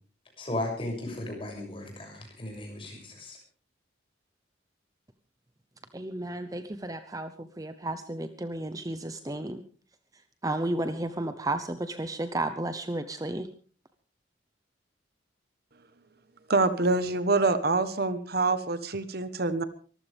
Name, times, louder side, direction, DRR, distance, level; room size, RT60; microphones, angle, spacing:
voice 1, 0.4-3.4, left 1 dB, 30° left, 1 dB, 7.1 m, -35 dB
voice 2, 5.9-9.6 10.4-13.5, right 1 dB, 20° right, 10 dB, 0.8 m, -33 dB
voice 3, 16.5-19.6, right 3 dB, 55° right, 12 dB, 1.2 m, -26 dB
23.5 x 15.0 x 3.5 m, 0.40 s
head